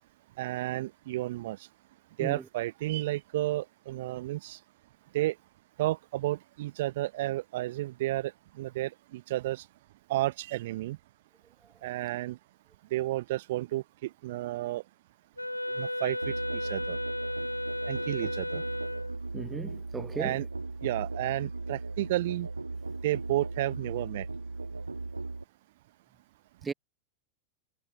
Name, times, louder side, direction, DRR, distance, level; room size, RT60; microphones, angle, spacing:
voice 1, 0.4-1.6 2.2-4.6 5.1-5.3 5.8-8.3 8.6-9.6 10.1-11.0 11.8-12.4 12.9-14.8 15.8-17.0 17.9-18.6 20.2-20.4 20.8-22.5 23.0-24.3, right 16 dB, 55° right, 0.9 m, -32 dB
Wind instrument woodwind instrument, 15.4-19.2, left 1 dB, 85° left, 1.6 m, -34 dB
Musical instrument, 16.2-25.4, right 3 dB, 80° right, 1.6 m, -37 dB
voice 2, 18.2-18.6 19.3-20.4 26.6-26.7, right 5 dB, 15° right, 0.8 m, -37 dB
figure-of-eight pair, 90°, 0 cm